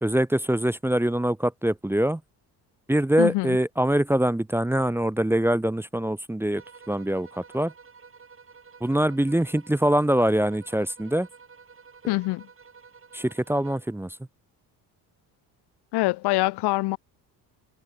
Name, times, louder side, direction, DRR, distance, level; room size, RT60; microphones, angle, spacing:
voice 1, 0.0-2.2 2.9-6.6 6.9-7.7 8.8-11.3 13.1-14.1, right 1 dB, 5° right, 0.9 m, -24 dB
voice 2, 3.2-3.6 12.1-12.5 15.9-17.0, left 20 dB, 85° left, 1.5 m, -24 dB
sound 1, 6.5-14.0, right 5 dB, 35° right, 7.1 m, -50 dB
cardioid pair, 95°, 39 cm